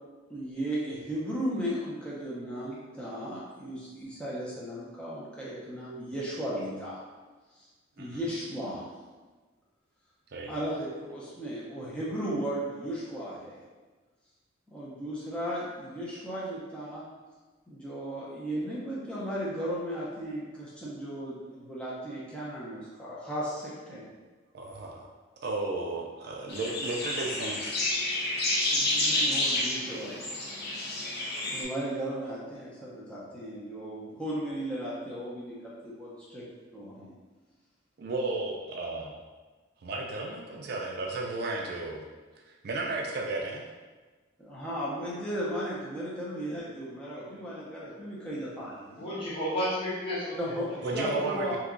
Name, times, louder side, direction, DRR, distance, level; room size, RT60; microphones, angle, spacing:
voice 1, 0.3-7.0 7.5-7.7 8.0-8.9 10.5-13.6 14.7-17.1 17.7-24.1 28.6-30.3 31.0-36.4 36.7-37.1 44.4-49.1 50.3-51.6, equal, 5° left, -8 dB, 0.6 m, -36 dB
voice 2, 24.5-25.1 25.4-27.8 38.0-39.2 39.8-42.1 42.6-43.6 50.8-51.6, right 2 dB, 50° right, -1 dB, 0.4 m, -33 dB
sound 1, 26.5-31.6, left 2 dB, 50° left, 0.6 m, -29 dB
voice 3, 48.9-51.1, equal, 25° left, -10 dB, 1.0 m, -33 dB
2.8 x 2.3 x 3.7 m, 1.3 s
head